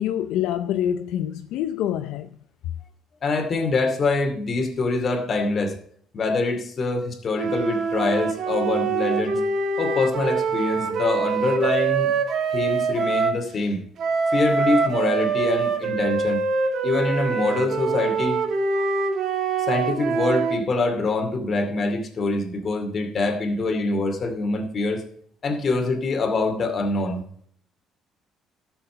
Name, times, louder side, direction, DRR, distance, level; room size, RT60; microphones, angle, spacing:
voice 1, 0.0-2.3, left 10 dB, 80° left, 0.6 m, -26 dB
voice 2, 3.2-5.8 6.1-9.5 9.8-12.1 12.5-13.8 14.3-16.4 16.8-18.4 19.7-25.0 25.4-27.2, left 3 dB, 35° left, 2.4 m, -24 dB
sound 1, 7.3-13.4 14.0-20.6, right 5 dB, 55° right, 1.8 m, -24 dB
13.0 x 7.1 x 5.0 m
cardioid pair, 120°, 0 cm